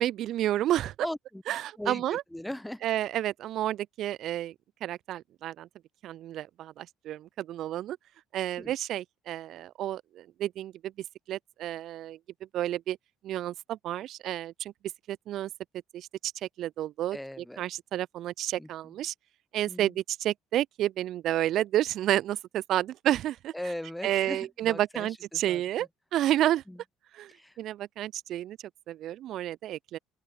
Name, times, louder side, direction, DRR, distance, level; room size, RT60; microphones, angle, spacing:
voice 1, 0.0-0.9 1.5-2.2 2.8-4.5 4.8-5.7 6.0-8.0 8.3-10.9 11.3-12.2 12.5-13.0 13.2-14.7 15.1-15.5 15.9-16.3 16.6-17.2 17.6-19.1 19.5-23.5 24.0-26.6 27.1-27.3 27.6-28.6 28.9-30.0, right 13 dB, 55° right, 0.5 m, -30 dB
voice 2, 1.0-1.4 1.8-2.8 8.6-8.7 17.1-17.6 18.6-18.7 19.7-20.0 23.5-25.9 26.7-26.8 27.3-27.6, left 1 dB, 5° left, 1.5 m, -39 dB
open air
figure-of-eight pair, 55°, 0 cm